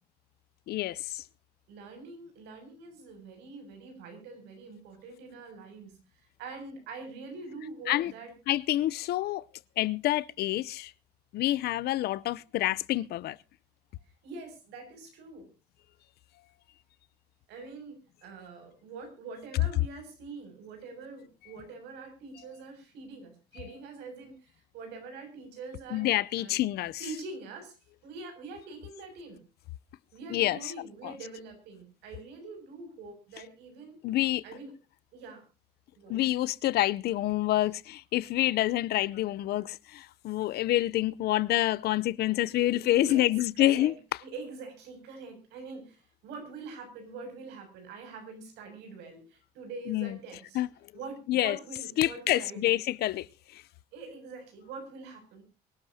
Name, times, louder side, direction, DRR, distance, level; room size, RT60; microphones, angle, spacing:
voice 1, 0.7-1.2 7.9-8.1 8.5-9.4 9.8-10.9 11.3-13.4 25.9-27.0 30.3-30.6 31.0-31.1 34.0-34.4 36.1-43.9 49.9-50.2 50.5-50.7 51.3-51.6 52.0-53.6, left 15 dB, 70° left, 0.7 m, -27 dB
voice 2, 1.7-8.3 14.1-15.5 17.5-26.1 26.4-26.6 27.0-27.8 28.0-29.4 30.1-34.0 34.4-34.7 35.1-35.4 36.0-36.2 37.6-37.7 42.8-50.6 50.9-52.8 53.9-55.4, right 4 dB, 85° right, 7.1 m, -44 dB
24.0 x 12.5 x 2.8 m
cardioid pair, 110°, 17 cm